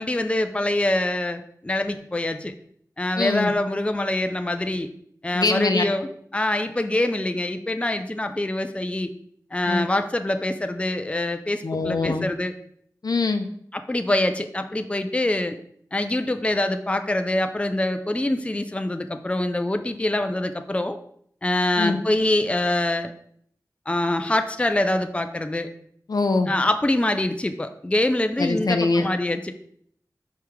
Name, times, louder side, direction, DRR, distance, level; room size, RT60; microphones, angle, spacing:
voice 1, 0.0-2.5 3.0-4.9 5.2-9.1 9.5-12.5 13.7-15.6 15.9-21.0 21.4-23.1 23.9-25.7 26.5-29.5, left 1 dB, 15° left, 7 dB, 0.5 m, -25 dB
voice 2, 3.2-3.5 5.3-5.8 9.7-9.8 11.6-12.3 13.0-13.5 21.8-22.0 26.1-26.5 28.4-29.1, left 3 dB, 70° left, 7 dB, 0.7 m, -23 dB
5.5 x 4.8 x 4.6 m, 0.66 s
wide cardioid pair, 70°, 7 cm